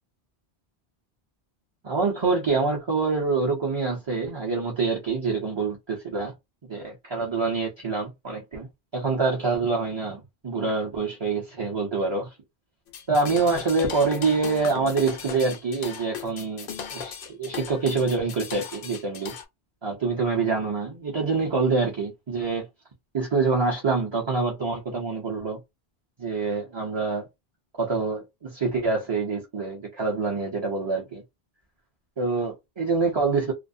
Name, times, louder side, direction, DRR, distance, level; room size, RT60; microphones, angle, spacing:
voice 1, 1.8-6.3 6.7-8.7 8.9-12.3 13.1-19.3 19.8-22.7 23.1-25.6 26.2-27.2 27.8-31.2 32.2-33.5, right 4 dB, 30° right, 0.6 m, -26 dB
sound 1, 12.9-19.4, left 7 dB, 65° left, 0.7 m, -37 dB
2.3 x 2.0 x 2.6 m
omnidirectional pair, 1.1 m